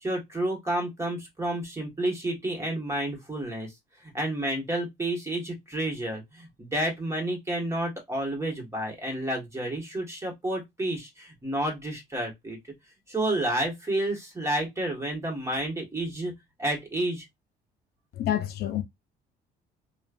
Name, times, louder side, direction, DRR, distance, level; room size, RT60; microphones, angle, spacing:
voice 1, 0.0-3.7 4.0-12.6 13.1-16.3 16.6-17.2, right 1 dB, 15° right, 1.4 m, -30 dB
voice 2, 18.1-18.8, left 11 dB, 70° left, 0.5 m, -28 dB
3.0 x 2.3 x 2.4 m
cardioid pair, 110°, 17 cm